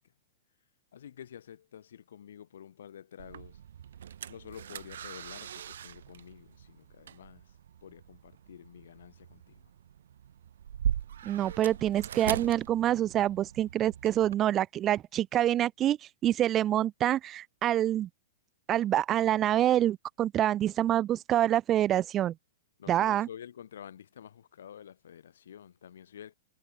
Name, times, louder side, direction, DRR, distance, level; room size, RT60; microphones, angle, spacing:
voice 1, 0.9-3.6 4.3-7.6 7.8-9.7 22.8-26.4, left 9 dB, 85° left, 2.5 m, -49 dB
sound 1, 3.2-14.3, right 9 dB, 80° right, 0.4 m, -40 dB
voice 2, 11.2-18.1 18.7-22.3 22.9-23.3, right 12 dB, 20° right, 0.5 m, -26 dB
supercardioid pair, 165°, 0 cm